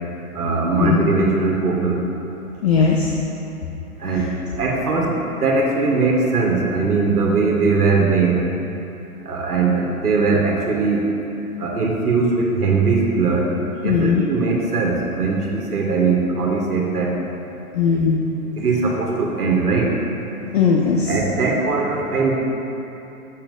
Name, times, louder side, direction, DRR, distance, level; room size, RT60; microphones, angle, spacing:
voice 1, 0.3-2.0 4.0-4.3 4.6-8.4 9.2-11.0 11.6-13.5 13.8-17.1 18.6-19.9 21.1-22.3, right 4 dB, 80° right, -1 dB, 1.7 m, -20 dB
voice 2, 2.6-3.1 4.0-4.2 13.8-14.3 17.7-18.2 20.5-21.1, left 5 dB, 45° left, -1 dB, 0.9 m, -18 dB
10.5 x 6.8 x 4.0 m, 3.0 s
hypercardioid pair, 140°, 44 cm